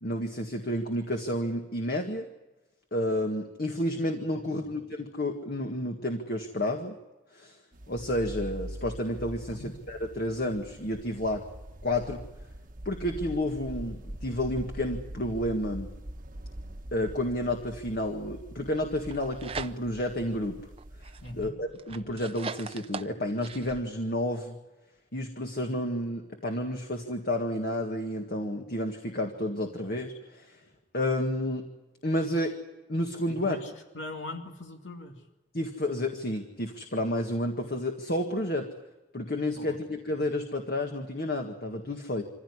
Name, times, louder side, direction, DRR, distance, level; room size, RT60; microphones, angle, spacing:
voice 1, 0.0-2.3 2.9-7.0 7.3-7.6 7.9-11.4 11.8-12.2 12.9-15.9 16.9-20.6 21.3-24.6 25.1-30.6 30.9-31.7 32.0-32.6 32.9-33.6 35.5-38.7 39.1-42.2, left 1 dB, 55° left, 3 dB, 1.9 m, -31 dB
sound 1, 7.7-21.5, right 1 dB, 50° right, 1.1 m, -43 dB
sound 2, 19.0-20.1 20.6-23.8, right 5 dB, 30° right, 0.7 m, -41 dB
voice 2, 21.2-21.5 33.3-35.2 39.6-39.8, left 2 dB, 90° left, 3 dB, 2.5 m, -41 dB
25.0 x 16.0 x 9.8 m, 1.1 s
head